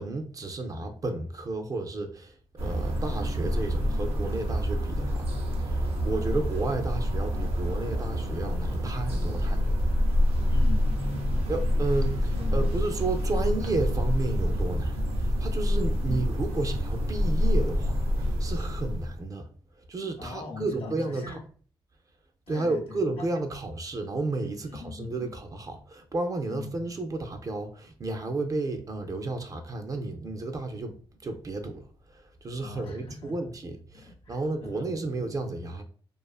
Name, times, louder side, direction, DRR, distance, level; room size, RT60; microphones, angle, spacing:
voice 1, 0.0-2.3 2.6-5.3 5.6-9.7 11.5-19.5 19.9-21.4 22.5-31.0 31.2-31.8 32.1-35.8, right 2 dB, 35° right, 0.4 m, -32 dB
sound 1, 2.6-19.2, equal, 85° right, 0.6 m, -27 dB
voice 2, 10.5-11.7 12.3-12.7 16.0-16.4 20.2-21.4 22.5-23.3 24.6-25.3 26.4-26.8 32.6-33.3 34.0-35.4, left 4 dB, 75° left, 0.6 m, -42 dB
2.4 x 2.3 x 2.3 m
cardioid pair, 85°, 10 cm